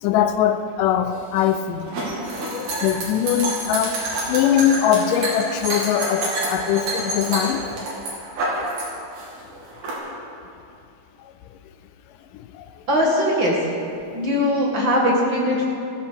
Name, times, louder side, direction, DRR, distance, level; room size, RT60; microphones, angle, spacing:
voice 1, 0.0-1.9 2.4-4.0 4.3-7.6 11.2-11.3 12.3-12.7, left 9 dB, 85° left, 9 dB, 1.8 m, -22 dB
sound 1, 1.1-8.8 9.1-9.9, right 2 dB, 80° right, 5.3 m, -27 dB
voice 2, 12.9-13.6 14.1-15.6, equal, 40° right, -2 dB, 1.8 m, -20 dB
15.0 x 14.5 x 5.3 m, 2.6 s
omnidirectional pair, 4.4 m